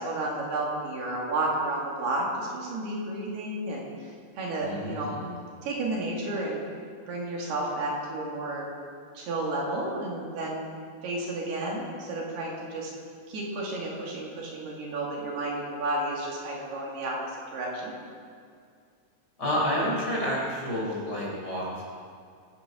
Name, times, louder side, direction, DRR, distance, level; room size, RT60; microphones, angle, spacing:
voice 1, 0.0-4.1 4.4-5.1 5.6-6.6 7.1-8.7 9.1-10.7 11.0-12.9 13.3-17.9, right 2 dB, 75° right, -3 dB, 4.4 m, -32 dB
voice 2, 4.6-5.3 19.4-21.8, equal, 25° left, -6 dB, 4.3 m, -29 dB
24.0 x 9.6 x 5.2 m, 2.2 s
omnidirectional pair, 4.7 m